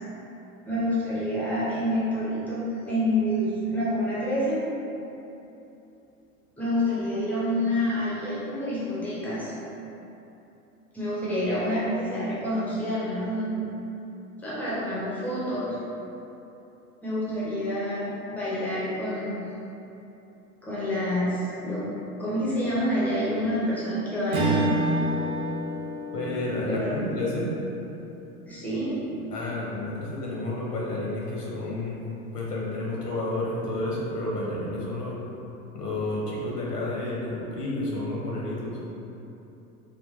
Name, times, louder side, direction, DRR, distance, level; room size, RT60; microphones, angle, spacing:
voice 1, 0.7-4.6 6.6-9.5 10.9-13.7 14.4-15.8 17.0-19.5 20.6-21.9 22.2-24.6 26.7-27.1 28.4-29.0, equal, 5° left, -9 dB, 0.4 m, -28 dB
Strum, 24.3-28.9, right 1 dB, 45° right, 0.6 m, -29 dB
voice 2, 26.1-27.5 29.3-32.0 32.3-35.2 35.7-38.8, left 2 dB, 85° left, -4 dB, 0.8 m, -30 dB
3.2 x 2.2 x 2.4 m, 3.0 s
figure-of-eight pair, 85°, 47 cm